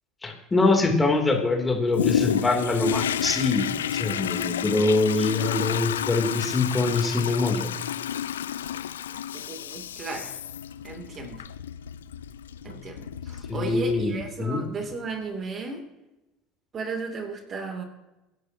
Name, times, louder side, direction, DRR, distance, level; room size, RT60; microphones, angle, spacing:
voice 1, 0.2-3.7 4.0-7.7 13.5-14.6, left 3 dB, 20° left, 3 dB, 3.1 m, -24 dB
Toilet flush, 1.9-14.4 14.9-15.0, left 9 dB, 80° left, 0.5 m, -31 dB
voice 2, 9.3-10.4 10.8-11.4 12.6-15.8 16.7-17.8, right 4 dB, 35° right, 5 dB, 2.9 m, -35 dB
25.5 x 11.0 x 2.9 m, 0.99 s
hypercardioid pair, 70°, 0 cm